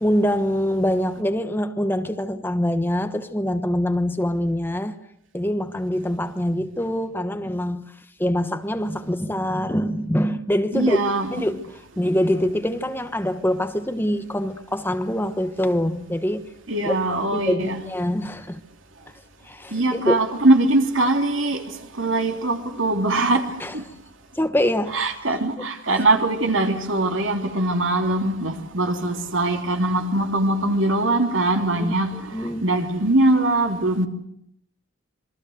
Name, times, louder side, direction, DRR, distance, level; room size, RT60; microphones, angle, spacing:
voice 1, 0.0-4.9 5.3-7.9 8.2-11.0 11.3-16.5 16.8-17.0 17.3-18.6 19.4-20.2 23.6-23.7 24.3-25.0 31.8-32.7, equal, 10° left, 1.2 m, -24 dB
voice 2, 10.7-11.3 16.7-17.8 19.7-21.6 22.0-23.8 24.9-34.1, right 2 dB, 70° right, 3.1 m, -22 dB
27.0 x 23.0 x 8.0 m
head